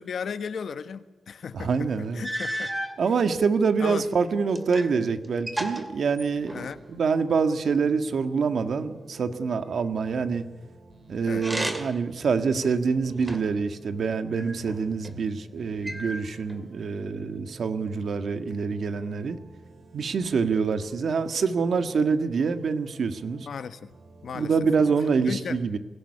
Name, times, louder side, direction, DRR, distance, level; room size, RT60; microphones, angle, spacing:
voice 1, 0.0-2.7 3.8-4.0 6.5-6.8 11.3-11.5 23.5-23.9 24.2-24.5 25.3-25.6, left 6 dB, 70° left, 1.3 m, -35 dB
voice 2, 1.5-2.2 3.0-6.5 6.9-10.4 11.1-19.4 19.9-23.5 24.3-25.8, right 5 dB, 70° right, 1.8 m, -26 dB
sound 1, 1.6-1.7 2.2-3.0 3.8-5.0 5.2-6.8 11.3-12.1 12.6-13.6 14.4-15.2 15.8-16.6, right 1 dB, 10° right, 2.4 m, -34 dB
sound 2, 6.2-24.9, right 3 dB, 50° right, 8.0 m, -51 dB
23.0 x 17.5 x 9.9 m
wide cardioid pair, 135°, 0 cm